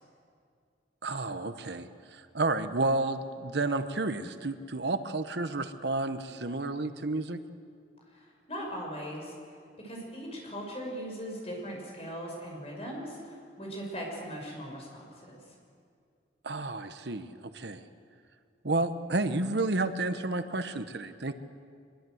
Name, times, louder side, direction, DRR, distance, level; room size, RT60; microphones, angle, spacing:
voice 1, 1.0-7.4 16.4-17.8 18.6-21.3, right 2 dB, 65° right, 10 dB, 1.1 m, -31 dB
voice 2, 8.1-9.3 9.8-15.4, equal, 30° left, 0 dB, 6.0 m, -39 dB
24.0 x 22.0 x 7.9 m, 2.3 s
head